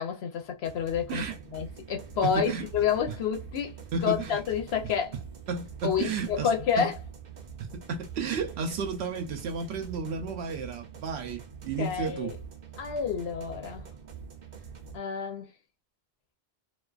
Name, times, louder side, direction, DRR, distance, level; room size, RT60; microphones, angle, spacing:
voice 1, 0.0-1.2 1.5-5.1 5.8-6.9 11.8-12.4 12.8-13.9 14.9-15.5, left 7 dB, 80° left, 1.0 m, -29 dB
sound 1, 0.6-15.0, right 6 dB, 50° right, 0.7 m, -45 dB
voice 2, 2.2-2.7 3.9-4.4 5.5-6.5 6.8-6.9 7.6-12.4, right 4 dB, 85° right, 0.9 m, -32 dB
2.4 x 2.3 x 2.3 m
omnidirectional pair, 1.1 m